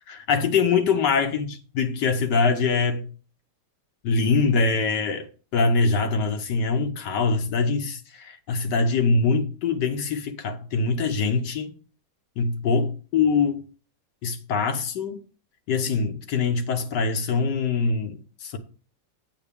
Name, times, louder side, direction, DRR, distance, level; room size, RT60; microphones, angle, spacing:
voice 1, 0.1-3.1 4.0-11.7 12.4-13.6 14.2-15.2 15.7-18.6, left 4 dB, 70° left, 1.4 m, -23 dB
8.4 x 7.6 x 3.4 m
omnidirectional pair, 2.0 m